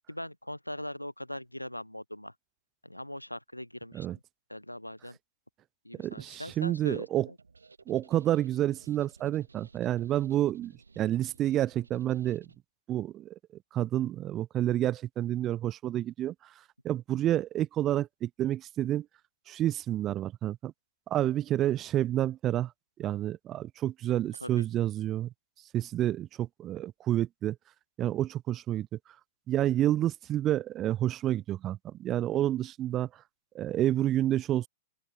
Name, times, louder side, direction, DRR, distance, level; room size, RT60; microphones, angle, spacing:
voice 1, 0.1-2.3 2.8-4.2 4.5-5.2 5.8-7.4 24.3-24.6, left 1 dB, 90° left, 0.9 m, -41 dB
voice 2, 6.0-7.3 7.9-12.5 12.9-13.3 13.7-16.3 16.8-19.1 19.5-20.7 21.1-22.7 23.0-25.3 25.7-27.6 28.0-28.9 29.5-33.1 33.5-34.7, right 12 dB, 25° right, 0.4 m, -29 dB
sound 1, 7.4-12.6, right 4 dB, 75° right, 7.4 m, -57 dB
open air
figure-of-eight pair, 100°, 0 cm